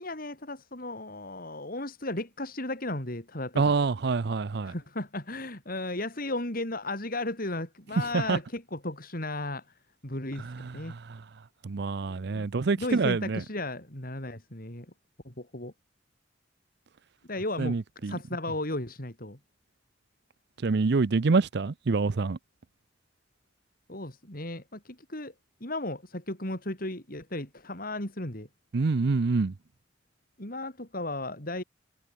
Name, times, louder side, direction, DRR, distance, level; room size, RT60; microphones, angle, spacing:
voice 1, 0.0-3.7 4.6-9.7 10.0-11.0 12.8-14.9 15.2-15.7 17.3-19.4 23.9-25.3 25.6-28.5 30.4-31.6, left 2 dB, 50° left, 5.6 m, -35 dB
voice 2, 3.6-4.7 8.1-8.4 10.4-11.2 11.6-13.4 17.6-18.1 20.6-22.4 28.7-29.5, right 4 dB, 60° right, 0.6 m, -26 dB
head